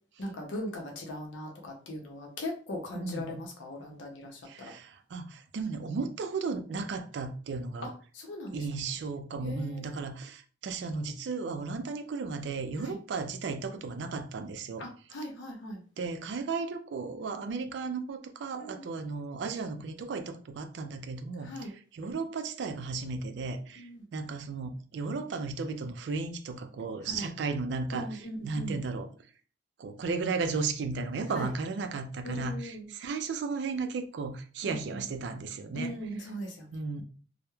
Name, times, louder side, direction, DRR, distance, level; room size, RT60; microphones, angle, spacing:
voice 1, 0.2-4.7 7.8-8.7 9.4-10.0 12.8-13.0 14.8-15.8 18.6-18.8 21.4-21.7 23.8-24.0 27.0-27.3 27.9-28.8 31.4-31.5 32.2-32.9 34.6-35.0 35.7-37.0, left 1 dB, 75° left, 0.6 m, -39 dB
voice 2, 2.9-3.4 4.5-7.9 8.5-14.9 16.0-23.9 24.1-29.1 29.8-35.9 36.7-37.0, right 4 dB, 65° right, 0.3 m, -35 dB
2.2 x 2.1 x 3.0 m
head